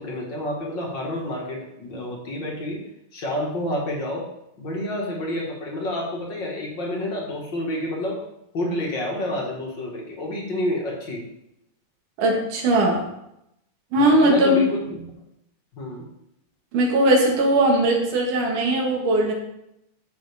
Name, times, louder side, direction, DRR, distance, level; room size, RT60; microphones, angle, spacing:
voice 1, 0.0-2.8 3.1-4.2 4.6-8.2 8.5-11.3 14.0-15.1 15.7-16.0, left 1 dB, 40° left, -2 dB, 2.1 m, -29 dB
voice 2, 12.2-13.0 13.9-14.7 16.7-19.3, right 1 dB, 70° right, 0 dB, 3.2 m, -19 dB
13.0 x 6.6 x 3.6 m, 0.83 s
omnidirectional pair, 3.7 m